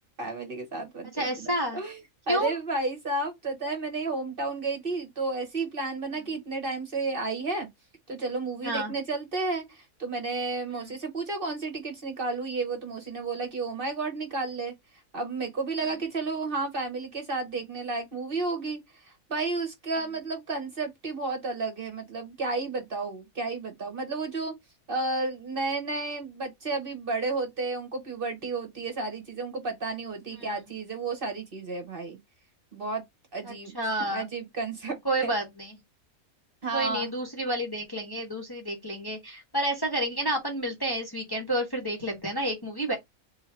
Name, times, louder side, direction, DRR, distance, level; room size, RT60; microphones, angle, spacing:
voice 1, 0.2-2.0 2.3-7.7 8.1-14.7 15.1-24.5 24.9-32.2 32.7-33.0 33.3-33.7 34.0-35.3 36.6-37.1, right 3 dB, 45° right, 1.1 m, -32 dB
voice 2, 1.2-1.8 2.3-2.5 8.6-8.9 10.7-10.9 30.3-30.5 33.4-34.3 35.0-35.8 36.7-42.9, right 1 dB, 20° left, 0.9 m, -30 dB
3.1 x 2.8 x 4.4 m
omnidirectional pair, 1.5 m